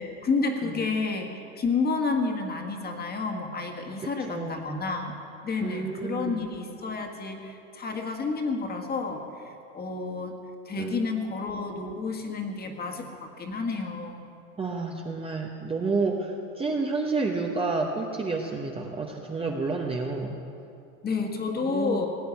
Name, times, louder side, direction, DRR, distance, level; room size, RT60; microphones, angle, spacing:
voice 1, 0.0-5.1 5.4-10.3 10.6-14.2 21.0-22.1, left 4 dB, 25° left, 3 dB, 1.7 m, -30 dB
voice 2, 4.0-4.7 5.6-6.4 10.8-11.0 14.6-20.4 21.6-22.1, right 3 dB, 15° right, 1 dB, 0.9 m, -30 dB
17.5 x 8.6 x 8.3 m, 2.6 s
supercardioid pair, 125°, 41 cm